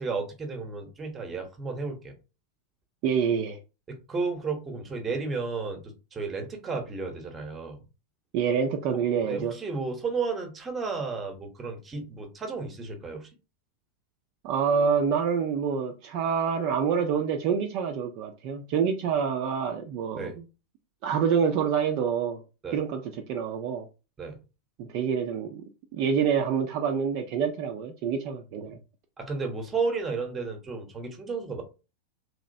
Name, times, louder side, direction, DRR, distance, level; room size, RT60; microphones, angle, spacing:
voice 1, 0.0-2.1 3.9-7.8 9.2-13.3 20.2-20.3 22.6-22.8 24.2-24.4 29.2-31.6, right 4 dB, 20° right, 0.9 m, -33 dB
voice 2, 3.0-3.6 8.3-9.5 14.4-20.4 21.0-22.4 22.7-23.9 24.8-25.6 25.9-28.8, right 7 dB, 45° right, 0.4 m, -27 dB
3.2 x 2.9 x 2.6 m
figure-of-eight pair, 90°, 0 cm